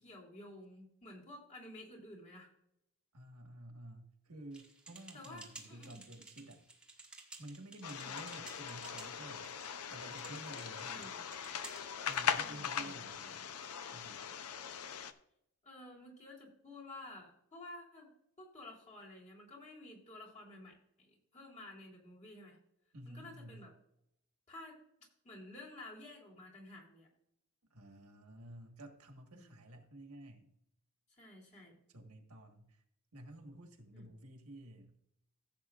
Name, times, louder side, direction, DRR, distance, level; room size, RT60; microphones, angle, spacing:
voice 1, 0.0-2.5 5.1-6.0 8.0-8.2 10.8-11.2 12.4-13.0 15.6-18.1 18.4-22.6 23.0-23.7 24.5-24.8 25.2-27.1 29.3-29.6 31.2-31.7 33.9-34.1, left 1 dB, 35° left, -3 dB, 3.4 m, -52 dB
voice 2, 3.1-6.6 7.4-9.5 9.9-11.1 12.0-13.5 13.9-14.2 22.9-23.7 27.7-30.5 31.9-32.8 33.1-34.9, right 1 dB, 75° right, 4 dB, 1.6 m, -52 dB
sound 1, 4.5-12.2, right 3 dB, 5° right, 1.5 m, -55 dB
sound 2, 7.8-15.1, left 7 dB, 80° left, 0.7 m, -40 dB
15.5 x 7.8 x 2.5 m, 0.77 s
head